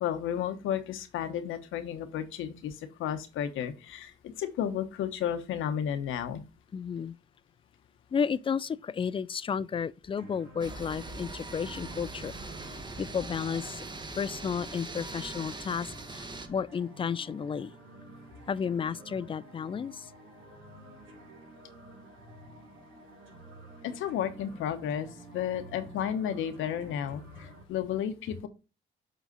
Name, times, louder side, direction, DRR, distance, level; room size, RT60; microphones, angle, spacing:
voice 1, 0.0-6.4 23.8-25.1 25.3-28.5, left 9 dB, 85° left, 1.1 m, -33 dB
voice 2, 6.7-7.1 8.1-12.3 13.0-13.8 14.2-17.7 18.5-20.1, left 6 dB, 25° left, 0.4 m, -32 dB
sound 1, 10.2-27.6, right 2 dB, 80° right, 3.2 m, -51 dB
sound 2, 10.6-16.5, right 3 dB, 20° right, 1.1 m, -41 dB
8.0 x 4.0 x 3.9 m
cardioid pair, 90°, 20 cm